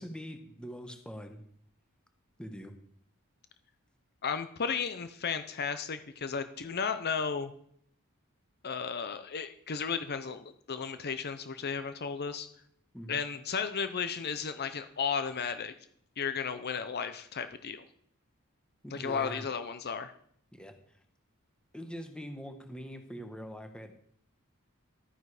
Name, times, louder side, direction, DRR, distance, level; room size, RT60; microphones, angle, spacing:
voice 1, 0.0-1.4 2.4-2.7 12.9-13.2 18.8-19.4 20.5-20.7 21.7-24.0, equal, 5° left, 6 dB, 1.2 m, -43 dB
voice 2, 4.2-7.5 8.6-12.5 13.1-15.7 16.2-17.8 18.9-20.1, left 6 dB, 50° left, 10 dB, 0.7 m, -34 dB
13.0 x 9.3 x 4.9 m, 0.66 s
head